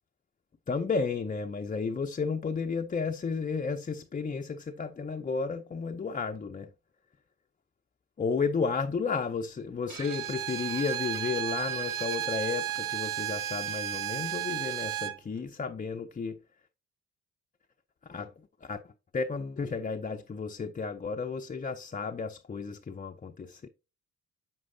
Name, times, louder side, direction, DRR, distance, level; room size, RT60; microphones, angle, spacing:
voice 1, 0.7-6.7 8.2-16.4 18.1-18.3 18.6-23.7, left 5 dB, 20° left, 0.5 m, -33 dB
Bowed string instrument, 9.9-15.2, right 12 dB, 60° right, 0.6 m, -33 dB
7.2 x 6.2 x 2.6 m
hypercardioid pair, 50°, 37 cm